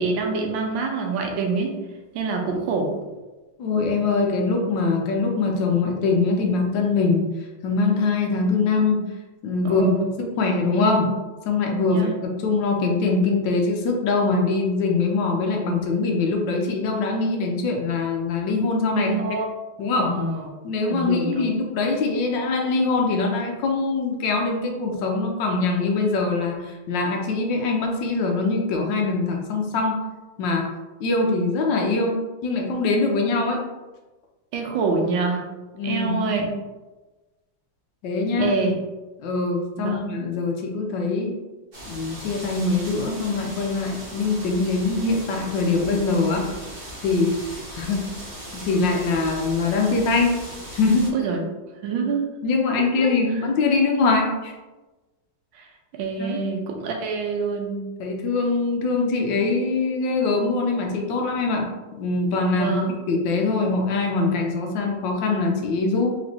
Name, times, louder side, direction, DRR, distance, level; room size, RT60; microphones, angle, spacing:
voice 1, 0.0-1.8 2.1-2.9 9.6-10.1 11.8-12.1 18.9-19.5 20.0-20.5 20.9-21.5 34.5-35.5 35.8-36.5 38.4-38.8 39.8-40.0 51.1-51.4 51.8-52.3 55.5-55.7 55.9-57.9 62.5-62.9, right 4 dB, 80° right, 2 dB, 1.4 m, -26 dB
voice 2, 3.6-7.3 7.6-9.0 9.4-9.9 10.2-11.1 11.4-19.2 19.8-20.1 20.6-30.0 30.4-30.7 31.0-33.6 35.8-36.3 38.0-38.5 39.2-41.4 41.9-46.5 47.0-47.4 47.8-48.1 48.6-50.4 50.8-51.1 52.4-54.5 56.2-56.4 58.0-61.7 62.0-62.8 63.1-66.1, left 3 dB, 75° left, 1 dB, 1.3 m, -23 dB
sound 1, 41.7-51.1, right 1 dB, 40° right, 1.0 m, -38 dB
4.2 x 3.1 x 2.7 m, 1.2 s
omnidirectional pair, 2.1 m